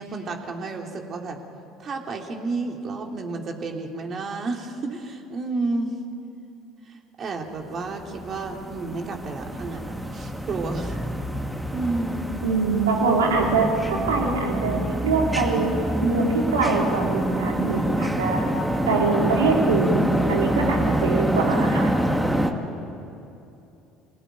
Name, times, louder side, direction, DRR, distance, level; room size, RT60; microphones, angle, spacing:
voice 1, 0.0-1.4 1.8-6.0 6.9-11.0 11.7-12.4, right 3 dB, 45° right, 2 dB, 3.2 m, -31 dB
sound 1, 7.9-22.5, right 1 dB, 5° right, 2.2 m, -26 dB
voice 2, 12.4-15.7 16.0-18.4 18.9-21.9, right 4 dB, 85° right, 0 dB, 3.4 m, -23 dB
25.0 x 18.0 x 9.5 m, 2.8 s
hypercardioid pair, 65°, 0 cm